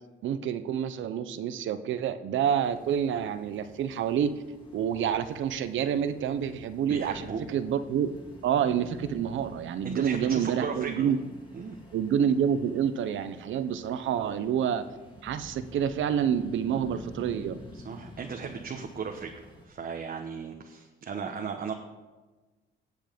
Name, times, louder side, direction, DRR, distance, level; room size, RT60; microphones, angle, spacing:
voice 1, 0.2-4.4 4.7-8.1 8.4-11.2 11.9-14.8 15.2-17.6, right 8 dB, 75° right, 12 dB, 0.9 m, -28 dB
sound 1, 2.6-19.7, equal, 25° left, 3.2 m, -49 dB
voice 2, 6.9-7.4 9.8-11.1 11.5-11.8 17.7-21.7, right 6 dB, 50° right, 2 dB, 1.2 m, -36 dB
18.5 x 7.3 x 5.3 m, 1.2 s
cardioid pair, 90°, 20 cm